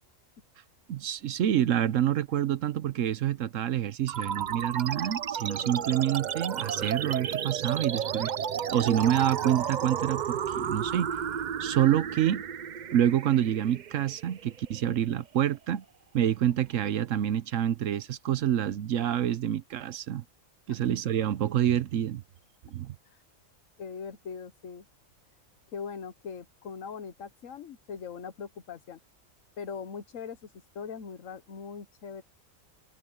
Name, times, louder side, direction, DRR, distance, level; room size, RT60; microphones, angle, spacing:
voice 1, 0.9-8.3 8.7-11.1 11.6-12.4 12.9-15.8 16.1-20.2 20.7-22.2 22.6-22.9, right 11 dB, 70° right, 1.1 m, -27 dB
sound 1, 4.1-15.0, right 8 dB, 55° right, 0.5 m, -33 dB
voice 2, 5.6-5.9 23.0-23.2 23.8-24.9 25.7-29.0 29.6-32.2, left 6 dB, 75° left, 1.4 m, -41 dB
omnidirectional pair, 1.4 m